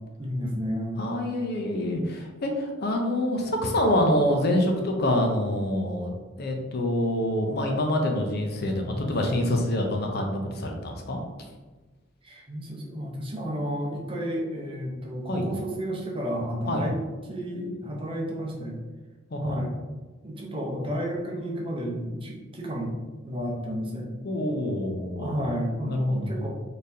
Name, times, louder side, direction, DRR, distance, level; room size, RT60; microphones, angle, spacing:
voice 1, 0.2-1.0 8.8-9.0 12.2-17.0 17.3-18.8 19.4-19.7 20.2-23.0 23.2-24.1 25.2-26.5, equal, 25° right, -1 dB, 0.7 m, -31 dB
voice 2, 1.0-6.1 6.4-11.2 15.3-15.5 16.7-16.8 19.3-19.6 24.2-25.3 25.9-26.5, left 1 dB, 55° left, 2 dB, 0.6 m, -26 dB
4.2 x 3.3 x 2.7 m, 1.2 s
head